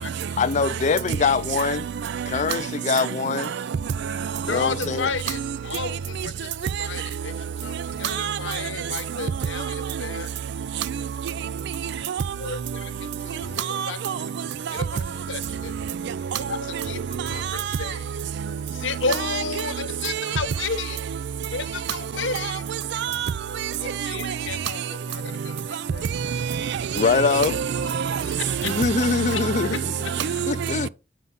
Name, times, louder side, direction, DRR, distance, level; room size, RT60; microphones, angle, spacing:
voice 1, 0.4-1.9 2.3-3.5 4.4-5.1 26.9-27.6 28.6-30.1 30.5-30.9, left 5 dB, 40° left, 0.4 m, -23 dB
voice 2, 4.5-5.4 5.6-6.5 6.8-7.3 7.6-10.3 12.4-14.0 14.7-14.8 15.3-15.7 16.5-16.6 16.9-17.0 17.3-17.4 17.8-18.0 18.8-21.0 21.5-22.6 23.8-24.8 25.1-26.1 28.5-28.7 29.3-29.4, left 5 dB, 80° left, 1.0 m, -32 dB
voice 3, 13.7-14.1 19.2-19.3 22.9-23.3 26.3-26.6 26.9-27.0 27.4-28.4 28.7-28.8 29.5-29.7 30.2-30.5, right 7 dB, 65° right, 0.4 m, -26 dB
7.5 x 5.7 x 4.0 m
head